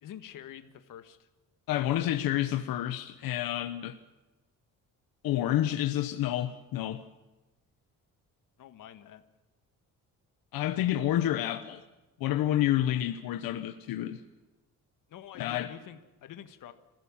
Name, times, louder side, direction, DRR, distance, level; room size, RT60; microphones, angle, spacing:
voice 1, 0.0-1.3 8.6-9.2 15.1-16.7, left 10 dB, 65° left, 1.6 m, -47 dB
voice 2, 1.7-4.0 5.2-7.0 10.5-11.8 12.2-14.2 15.4-15.7, left 12 dB, 90° left, 1.1 m, -29 dB
27.0 x 16.0 x 7.4 m
cardioid pair, 160°, 35 cm